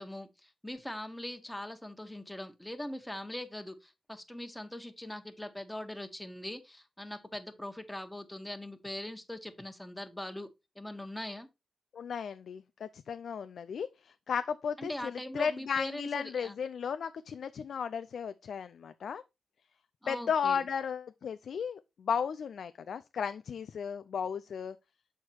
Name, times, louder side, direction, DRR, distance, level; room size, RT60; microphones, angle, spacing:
voice 1, 0.0-10.5 10.7-11.5 14.8-16.6 20.0-20.6, left 1 dB, 10° left, 1.4 m, -41 dB
voice 2, 11.9-19.2 20.1-24.8, left 7 dB, 75° left, 0.3 m, -35 dB
6.5 x 4.5 x 4.3 m
supercardioid pair, 45°, 0 cm